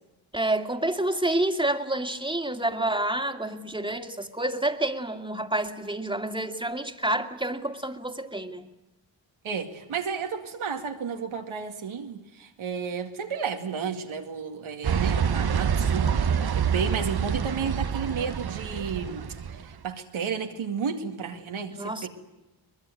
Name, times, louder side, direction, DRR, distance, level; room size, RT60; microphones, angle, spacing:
voice 1, 0.3-8.7 21.7-22.1, right 1 dB, 10° right, 5 dB, 2.3 m, -28 dB
voice 2, 9.4-19.3 19.6-22.1, right 6 dB, 85° right, 4 dB, 2.4 m, -32 dB
sound 1, 14.8-19.6, right 7 dB, 50° right, 1.1 m, -26 dB
23.0 x 21.0 x 9.7 m, 0.97 s
cardioid pair, 50°, 48 cm